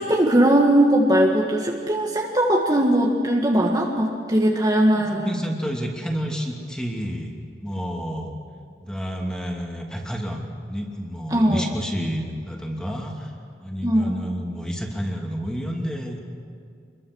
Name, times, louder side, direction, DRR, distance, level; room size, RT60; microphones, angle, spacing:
voice 1, 0.0-5.3 11.3-11.6 13.8-14.2, right 1 dB, 20° right, -1 dB, 1.8 m, -19 dB
voice 2, 4.9-8.3 8.8-13.3 13.6-16.2, equal, 5° left, 0 dB, 2.9 m, -30 dB
27.5 x 22.5 x 6.4 m, 2.3 s
head